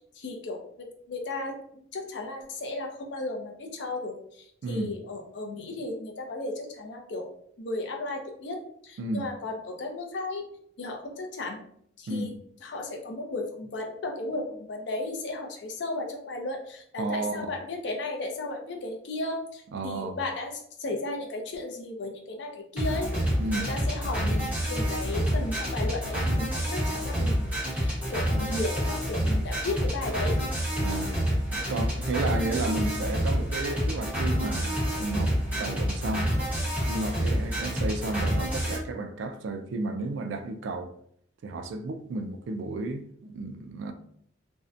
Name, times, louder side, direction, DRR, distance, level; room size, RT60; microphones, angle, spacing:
voice 1, 0.1-1.6 1.9-7.3 7.6-8.6 8.8-10.4 10.8-11.6 12.0-12.3 12.6-30.4, left 2 dB, 65° left, 0.5 m, -35 dB
voice 2, 4.6-4.9 9.0-9.3 12.1-12.3 17.0-17.5 19.7-20.2 23.4-23.7 30.8-31.2 31.5-36.3 36.9-40.9 41.4-43.9, right 2 dB, 70° right, 0.3 m, -32 dB
sound 1, 22.8-38.8, equal, 10° right, 0.9 m, -28 dB
2.6 x 2.1 x 2.4 m
head